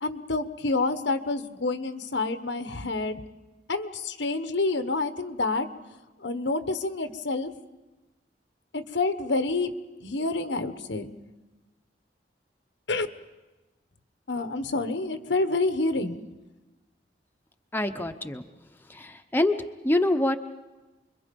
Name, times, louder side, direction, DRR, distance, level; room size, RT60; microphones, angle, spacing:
voice 1, 0.0-3.2 3.7-5.7 6.2-7.5 8.7-9.7 10.0-11.1 12.9-13.1 14.3-16.2, left 3 dB, 85° left, 10 dB, 1.3 m, -28 dB
voice 2, 17.7-18.4 18.9-19.5 19.8-20.4, left 1 dB, 10° left, 6 dB, 0.9 m, -25 dB
29.0 x 22.5 x 5.4 m, 1.1 s
head